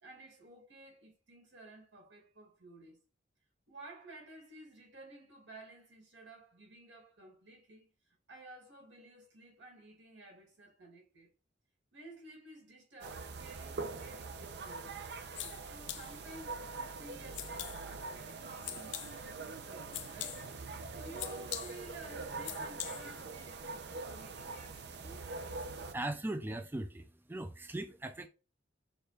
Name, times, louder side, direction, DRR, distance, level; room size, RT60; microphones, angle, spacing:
voice 1, 0.0-3.0 3.7-7.9 8.3-11.3 11.9-15.0 15.6-25.4, right 2 dB, 85° right, 2.0 m, -54 dB
sound 1, 13.0-25.9, right 4 dB, 65° right, 0.6 m, -43 dB
sound 2, 15.0-23.3, left 12 dB, 75° left, 0.5 m, -46 dB
voice 2, 25.9-28.3, right 1 dB, 10° right, 0.3 m, -39 dB
6.5 x 2.4 x 3.2 m
head